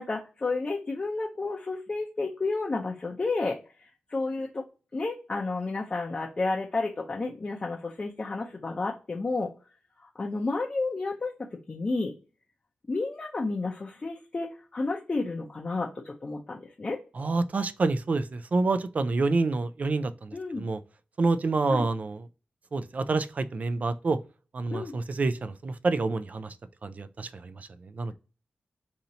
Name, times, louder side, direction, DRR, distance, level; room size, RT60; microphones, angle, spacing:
voice 1, 0.0-3.6 4.1-4.6 4.9-9.5 10.0-12.1 12.9-17.0 20.3-20.6 21.7-21.9 24.7-24.9, left 3 dB, 35° left, 0.5 m, -31 dB
voice 2, 17.2-20.8 21.2-22.2 22.7-24.2 24.5-26.5 26.8-28.1, right 3 dB, 45° right, 0.3 m, -28 dB
2.8 x 2.7 x 4.1 m
wide cardioid pair, 120°, 4 cm